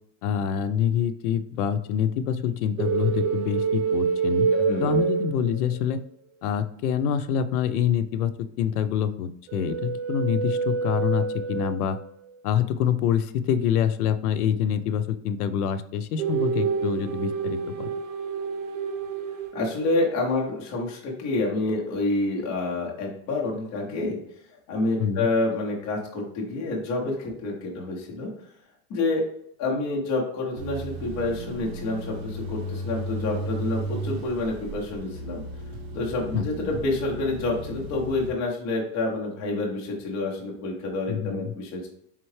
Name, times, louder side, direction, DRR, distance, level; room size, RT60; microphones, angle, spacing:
voice 1, 0.2-4.5 4.8-6.0 6.4-12.0 12.4-17.9 25.0-25.3 36.3-36.5 41.1-41.5, left 8 dB, 75° left, 11 dB, 0.6 m, -26 dB
sound 1, 2.8-6.0 9.5-12.1 16.2-20.0, right 5 dB, 75° right, 0.8 m, -27 dB
voice 2, 4.5-5.0 19.5-24.2 24.7-28.3 28.9-29.2 29.6-35.4 35.9-41.9, left 2 dB, 20° left, -2 dB, 0.4 m, -28 dB
sound 2, 30.6-38.3, right 1 dB, 45° right, 0.6 m, -35 dB
4.4 x 3.6 x 3.1 m, 0.71 s
supercardioid pair, 175°, 45 cm